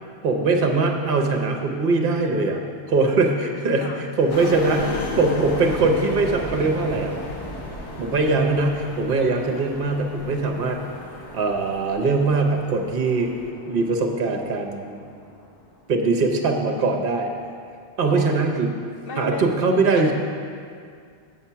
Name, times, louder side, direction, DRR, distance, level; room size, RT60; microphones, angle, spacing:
voice 1, 0.2-2.6 2.9-7.1 8.0-10.8 11.3-13.3 13.7-15.0 15.9-17.3 18.0-18.7 19.2-20.1, right 3 dB, 55° right, 3 dB, 0.9 m, -21 dB
sound 1, 4.3-13.5, left 2 dB, 75° left, 1.3 m, -36 dB
sound 2, 5.4-16.3, equal, 25° left, 0.7 m, -38 dB
voice 2, 18.1-18.6 19.0-19.5 19.9-20.1, left 3 dB, 60° left, 4 dB, 0.8 m, -34 dB
7.8 x 7.2 x 5.6 m, 2.3 s
omnidirectional pair, 1.2 m